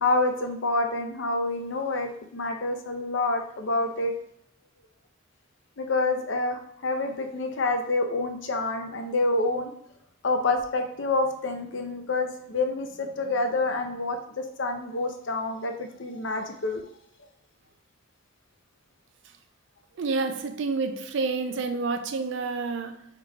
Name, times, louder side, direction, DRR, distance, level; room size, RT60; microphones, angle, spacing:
voice 1, 0.0-4.2 5.8-9.7 10.2-16.8, left 2 dB, 65° left, 0.6 m, -27 dB
voice 2, 20.0-23.1, right 4 dB, 60° right, 0.4 m, -29 dB
4.6 x 3.6 x 2.3 m
head